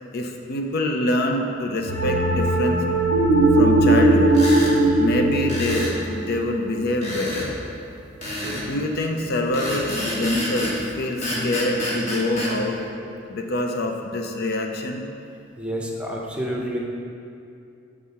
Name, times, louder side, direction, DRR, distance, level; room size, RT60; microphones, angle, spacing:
voice 1, 0.1-2.8 3.6-4.4 5.0-7.5 8.6-12.8 13.3-15.1, left 2 dB, 55° left, 3 dB, 0.5 m, -25 dB
sound 1, 1.9-7.1, right 2 dB, 75° left, 1.5 m, -19 dB
sound 2, 4.3-4.7 5.5-6.0 7.0-7.5 8.2-8.7 9.5-10.8 11.2-12.5, left 1 dB, 35° left, 1.4 m, -28 dB
voice 2, 15.6-16.8, equal, 5° right, -2 dB, 0.7 m, -29 dB
7.4 x 3.6 x 5.6 m, 2.5 s
head